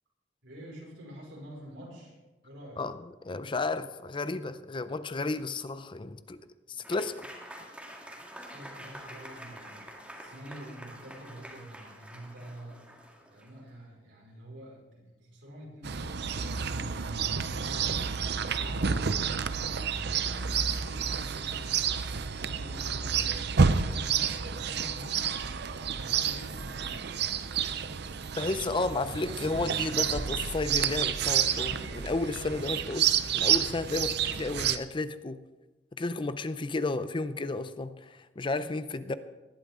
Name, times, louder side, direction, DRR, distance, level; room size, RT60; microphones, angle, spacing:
voice 1, 0.4-2.2 2.4-2.8 6.7-6.9 8.3-12.9 13.3-17.0 17.3-18.1 18.6-19.9 20.2-25.3 25.9-27.1, equal, 85° right, 5.3 m, -47 dB
voice 2, 3.2-7.3 28.4-35.4 36.0-39.1, left 3 dB, 25° left, 0.5 m, -32 dB
Applause / Crowd, 6.8-13.7, equal, 5° right, 1.9 m, -47 dB
Chirp tweet, 15.8-34.8, right 7 dB, 60° right, 0.6 m, -30 dB
19.0 x 12.0 x 3.7 m
head